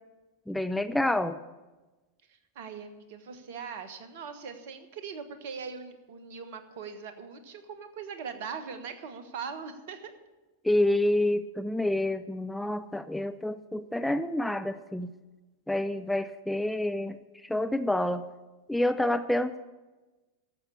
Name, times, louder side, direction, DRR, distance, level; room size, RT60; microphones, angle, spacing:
voice 1, 0.5-1.4 10.6-15.1 15.7-17.2 17.4-18.3 18.7-19.7, left 1 dB, 5° left, 10 dB, 0.4 m, -28 dB
voice 2, 2.3-10.1, right 6 dB, 55° right, 9 dB, 1.3 m, -41 dB
12.5 x 7.5 x 8.4 m, 1.2 s
figure-of-eight pair, 90°, 0 cm